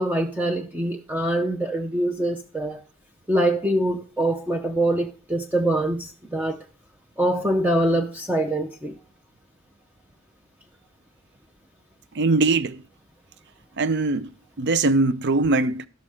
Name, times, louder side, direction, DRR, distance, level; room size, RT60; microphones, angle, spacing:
voice 1, 0.0-2.8 3.3-6.6 7.2-8.9, right 1 dB, 10° right, 0.6 m, -24 dB
voice 2, 12.1-12.8 13.8-15.9, right 3 dB, 50° right, 0.5 m, -22 dB
12.5 x 5.9 x 4.8 m
head